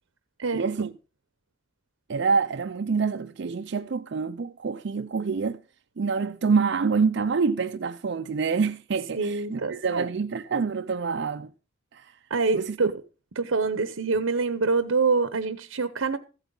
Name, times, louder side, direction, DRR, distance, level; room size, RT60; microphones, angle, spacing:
voice 1, 0.5-0.9 2.1-5.6 6.0-11.5 11.9-12.2 12.5-12.9, right 5 dB, 55° right, 0.4 m, -26 dB
voice 2, 9.2-10.1 12.3-13.0 13.3-16.2, right 4 dB, 80° right, 0.8 m, -25 dB
15.0 x 8.1 x 3.8 m
head